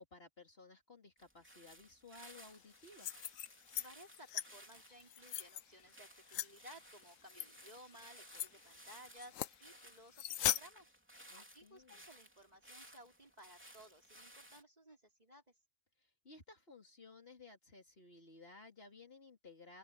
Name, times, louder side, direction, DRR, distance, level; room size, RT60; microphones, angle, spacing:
voice 1, 0.0-3.1 11.3-12.0 16.0-19.8, left 3 dB, 45° left, 3.3 m, -57 dB
sound 1, 1.2-14.6, equal, 10° right, 3.3 m, -59 dB
sound 2, 2.9-3.9 4.1-4.5 5.0-5.6 6.3-6.5 7.3-7.5 7.9-8.0 8.3-8.5 9.2-9.6 10.1-10.6, left 12 dB, 75° left, 1.1 m, -38 dB
voice 2, 3.7-10.9 11.3-15.6, equal, 30° right, 4.2 m, -58 dB
open air
omnidirectional pair, 1.4 m